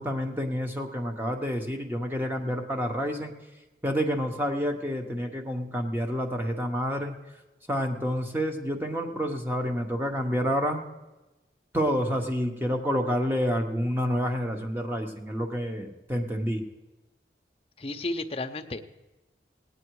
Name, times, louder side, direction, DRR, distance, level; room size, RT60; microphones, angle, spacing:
voice 1, 0.0-3.3 3.8-7.1 7.7-10.8 11.7-16.6, equal, 10° right, 3 dB, 1.0 m, -28 dB
voice 2, 17.8-18.8, left 2 dB, 35° left, 6 dB, 0.6 m, -32 dB
17.5 x 9.1 x 4.7 m, 1.1 s
head